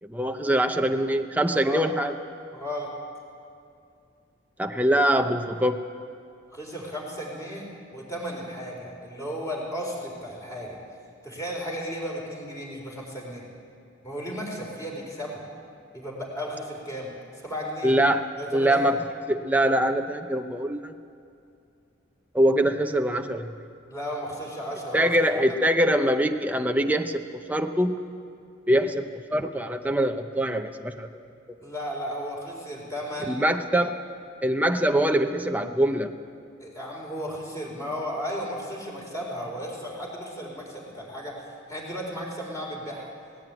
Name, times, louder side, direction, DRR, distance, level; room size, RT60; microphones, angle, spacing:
voice 1, 0.0-2.2 4.6-5.8 17.8-19.0 19.3-20.9 22.3-23.6 24.9-28.0 28.7-31.3 33.3-34.0 34.4-36.1, right 1 dB, 10° right, 5 dB, 0.8 m, -23 dB
voice 2, 2.5-2.9 6.5-10.8 11.2-13.4 14.0-15.4 15.9-17.1 17.4-17.9 18.4-18.9 23.9-25.4 31.6-33.4 36.6-43.1, equal, 15° left, -2 dB, 4.6 m, -34 dB
18.5 x 16.5 x 9.1 m, 2.5 s
head